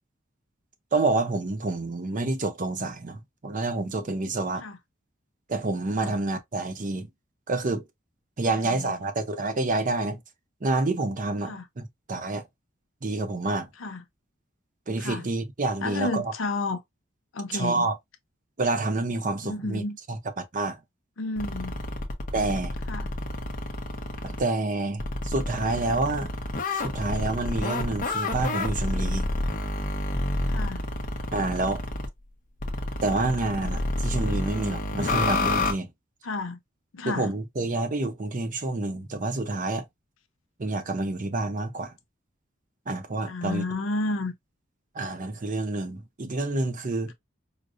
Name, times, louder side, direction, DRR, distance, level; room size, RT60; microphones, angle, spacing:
voice 1, 0.9-4.6 5.5-7.1 7.5-7.8 8.4-10.2 10.6-12.4 13.0-13.7 14.9-16.3 17.5-17.9 18.6-19.8 20.1-20.2 20.5-20.8 22.3-22.7 24.2-26.3 26.7-29.3 31.3-31.8 33.0-35.9 37.1-39.8 40.6-41.9 42.9-43.6 44.9-47.1, right 2 dB, 40° right, 0.6 m, -28 dB
voice 2, 8.4-9.0 11.4-11.6 13.8-14.0 15.0-15.3 15.8-16.8 17.3-17.9 19.4-20.0 21.2-21.8 22.9-23.1 30.5-30.8 36.2-36.6 36.9-37.3 43.3-44.3, left 2 dB, 80° left, 0.6 m, -31 dB
sound 1, 21.4-24.4 25.0-32.1 32.6-35.7, left 2 dB, 45° left, 0.7 m, -29 dB
4.8 x 2.0 x 2.5 m
head